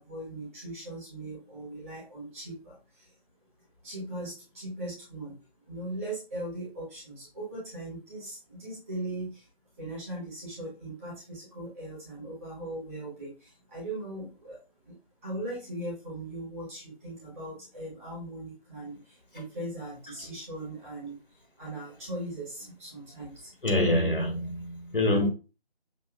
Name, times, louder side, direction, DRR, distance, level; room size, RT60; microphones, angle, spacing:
voice 1, 0.0-3.1 3.8-5.4 5.7-9.5 9.8-14.6 14.8-23.5, right 1 dB, 15° right, 1.5 m, -39 dB
voice 2, 23.6-25.3, left 1 dB, 55° left, 1.1 m, -25 dB
6.5 x 2.9 x 2.2 m
figure-of-eight pair, 160°, 31 cm